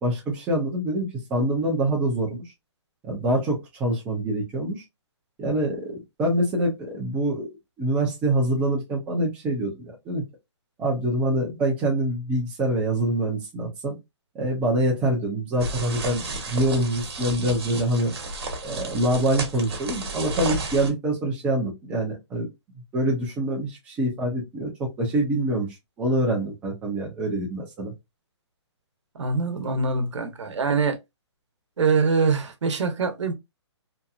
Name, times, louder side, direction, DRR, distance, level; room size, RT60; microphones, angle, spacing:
voice 1, 0.0-2.4 3.0-4.8 5.4-10.2 10.8-14.0 14.3-18.1 18.6-22.5 22.9-25.7 26.0-27.9, right 1 dB, 10° right, 0.5 m, -25 dB
sound 1, 15.6-20.9, right 2 dB, 60° right, 1.1 m, -32 dB
voice 2, 29.1-31.0 31.8-33.3, right 4 dB, 90° right, 0.9 m, -24 dB
2.8 x 2.5 x 2.3 m
hypercardioid pair, 170°, 15 cm